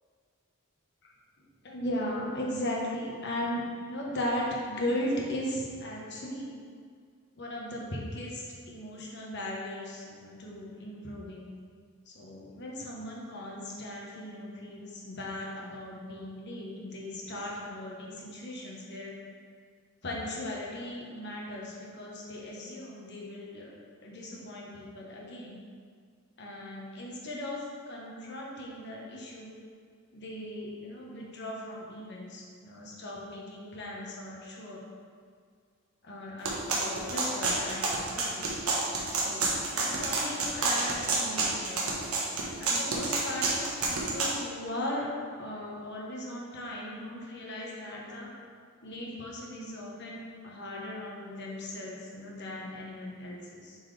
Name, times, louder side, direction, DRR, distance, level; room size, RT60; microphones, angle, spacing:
voice 1, 1.6-3.6 3.9-6.6 7.4-11.5 12.1-19.1 20.0-23.7 24.0-25.6 26.4-29.6 30.1-34.8 36.0-38.5 39.1-42.0 42.6-45.1 45.4-48.3 48.8-53.8, left 1 dB, 50° left, -3 dB, 1.2 m, -38 dB
sound 1, 36.5-44.3, right 3 dB, 85° right, 1.1 m, -29 dB
7.4 x 4.4 x 3.3 m, 2.1 s
head